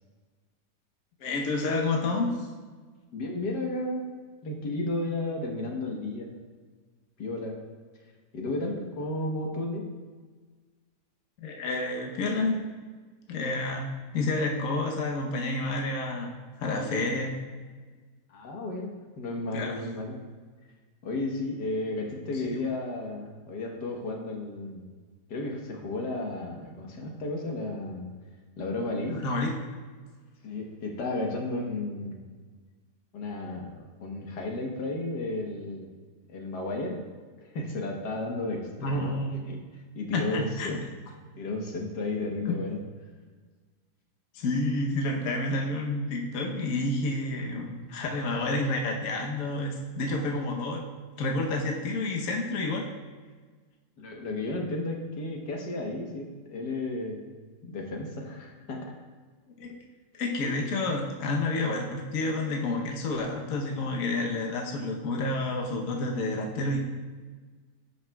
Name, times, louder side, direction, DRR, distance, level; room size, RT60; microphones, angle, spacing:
voice 1, 1.2-2.3 11.4-12.6 13.3-16.3 16.6-17.4 19.5-19.8 22.5-22.6 29.1-29.5 38.8-39.4 40.1-40.8 42.5-42.6 44.3-50.8 51.2-52.9 59.5-59.8 60.2-66.8, left 2 dB, 60° left, 0 dB, 1.3 m, -29 dB
voice 2, 3.1-4.1 4.4-6.4 7.2-7.6 8.3-9.9 18.3-20.2 21.0-24.9 25.3-28.1 28.6-29.2 30.4-32.3 33.1-35.9 36.3-37.0 37.4-39.1 39.4-40.8 41.4-42.8 54.0-57.3 57.6-58.9, left 2 dB, 80° left, 0 dB, 1.8 m, -33 dB
16.0 x 5.6 x 2.3 m, 1.4 s
omnidirectional pair, 1.8 m